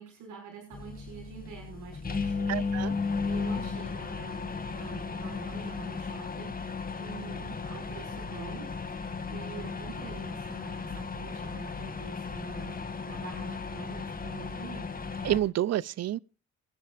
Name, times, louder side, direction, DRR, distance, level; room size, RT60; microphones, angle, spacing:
voice 1, 0.0-15.1, right 6 dB, 80° right, 6.2 m, -46 dB
sound 1, 0.7-15.4, left 4 dB, 30° left, 2.4 m, -35 dB
voice 2, 2.5-2.9 15.2-16.2, right 13 dB, 60° right, 0.6 m, -28 dB
24.5 x 11.0 x 2.5 m
cardioid pair, 90°, 30 cm